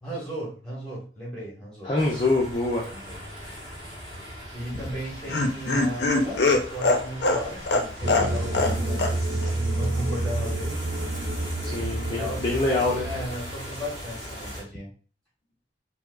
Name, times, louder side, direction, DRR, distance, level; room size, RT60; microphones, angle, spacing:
voice 1, 0.0-1.9 2.9-3.2 4.5-6.4 6.7-10.8 12.2-14.9, equal, 5° left, -5 dB, 1.3 m, -35 dB
voice 2, 1.8-2.9 3.4-3.6 11.6-13.1, left 2 dB, 25° left, -4 dB, 0.5 m, -25 dB
sound 1, 2.0-14.6, equal, 25° right, 1.6 m, -39 dB
Laughter, 4.7-8.7 9.0-9.1 9.4-9.5, left 2 dB, 80° left, 0.5 m, -23 dB
sound 2, 8.0-13.3, right 2 dB, 60° right, 0.8 m, -29 dB
4.3 x 2.0 x 2.3 m, 0.39 s
head